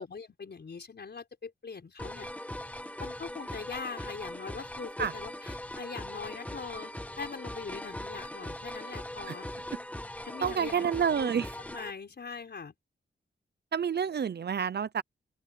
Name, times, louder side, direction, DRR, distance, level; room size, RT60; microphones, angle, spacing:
voice 1, 0.0-2.3 3.0-9.5 10.2-10.9 11.2-11.3 11.7-12.7, left 5 dB, 60° left, 4.9 m, -42 dB
sound 1, 2.0-11.9, left 1 dB, 5° left, 1.1 m, -40 dB
voice 2, 10.4-11.5 13.7-15.0, right 7 dB, 60° right, 0.6 m, -29 dB
open air
wide cardioid pair, 140°, 20 cm